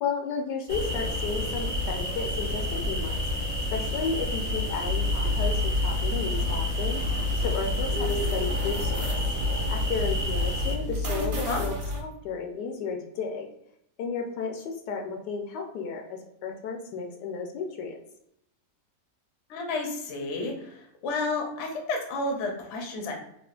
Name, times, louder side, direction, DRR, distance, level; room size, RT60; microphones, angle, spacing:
voice 1, 0.0-3.2 3.7-7.0 7.4-9.1 9.7-13.5 14.0-18.0, left 5 dB, 80° left, 2 dB, 1.2 m, -33 dB
sound 1, 0.7-10.8, left 1 dB, 30° right, 0.6 m, -30 dB
sound 2, 4.8-12.0, left 2 dB, 80° right, 0.4 m, -30 dB
voice 2, 19.5-23.1, left 3 dB, 60° left, 1 dB, 0.8 m, -31 dB
3.6 x 2.4 x 2.4 m, 0.75 s
omnidirectional pair, 1.8 m